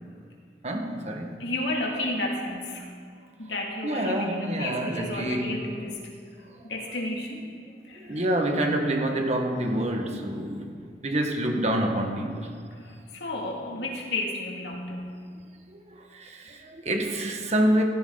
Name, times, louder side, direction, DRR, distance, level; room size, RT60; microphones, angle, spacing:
voice 1, 0.6-1.4 3.8-5.7 8.0-10.7 11.0-12.5 15.7-17.8, right 1 dB, 40° right, 3 dB, 1.6 m, -27 dB
voice 2, 1.4-2.9 3.4-6.0 6.6-7.4 7.9-8.2 12.8-15.1, left 2 dB, 90° left, -1 dB, 2.5 m, -32 dB
16.0 x 15.5 x 4.0 m, 2.1 s
head